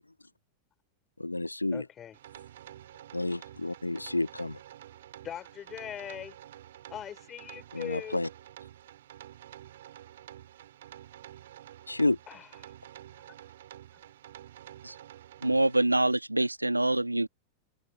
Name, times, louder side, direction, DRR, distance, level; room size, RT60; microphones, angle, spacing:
voice 1, 1.2-1.8 3.1-4.6 7.7-8.3 11.9-12.2, left 2 dB, 85° left, 0.5 m, -30 dB
voice 2, 1.7-2.2 5.2-6.4 6.9-8.2 12.3-12.7 13.1-13.2, left 9 dB, 25° left, 4.6 m, -41 dB
sound 1, 2.1-15.8, right 12 dB, 60° right, 4.2 m, -49 dB
voice 3, 15.4-17.3, right 2 dB, 85° right, 1.6 m, -25 dB
figure-of-eight pair, 90°, 0 cm